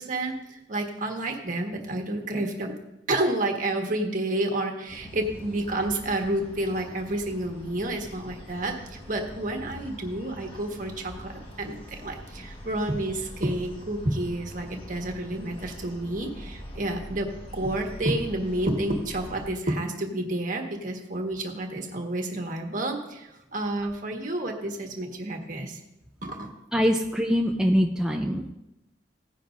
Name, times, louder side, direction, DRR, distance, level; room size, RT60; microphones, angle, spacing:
voice 1, 0.0-2.8 3.1-11.3 11.6-25.8 26.2-26.5, right 1 dB, 45° right, 2 dB, 1.5 m, -30 dB
sound 1, 4.9-19.5, equal, 30° left, 1.5 m, -43 dB
voice 2, 26.7-28.5, equal, 5° right, 1 dB, 0.5 m, -23 dB
17.0 x 10.0 x 2.6 m, 0.92 s
head